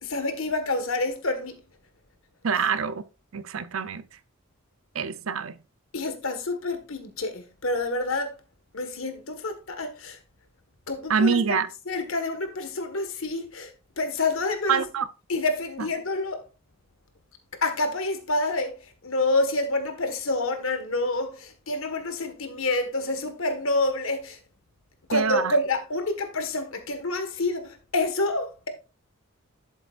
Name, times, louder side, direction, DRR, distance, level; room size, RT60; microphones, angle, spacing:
voice 1, 0.0-1.6 5.9-8.4 8.7-10.2 10.9-14.8 15.3-16.4 17.6-24.4 25.1-28.7, left 2 dB, 70° left, 1.6 m, -28 dB
voice 2, 2.4-3.0 3.3-4.0 4.9-5.6 11.1-11.7 14.7-15.1 25.1-25.5, right 6 dB, 75° right, 0.6 m, -25 dB
11.5 x 7.8 x 2.5 m
head